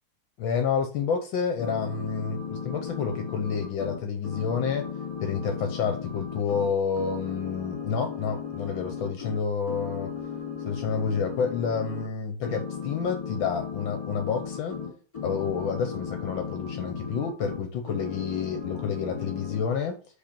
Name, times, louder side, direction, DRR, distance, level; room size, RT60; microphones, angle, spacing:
voice 1, 0.4-4.8 5.2-10.1 10.7-14.8 15.2-20.0, left 6 dB, 70° left, 6 dB, 1.4 m, -29 dB
sound 1, 1.6-6.7 6.9-9.4 9.7-12.0 12.4-17.6 17.9-19.6, left 7 dB, 20° left, 2.2 m, -36 dB
4.9 x 4.6 x 5.3 m, 0.40 s
omnidirectional pair, 2.4 m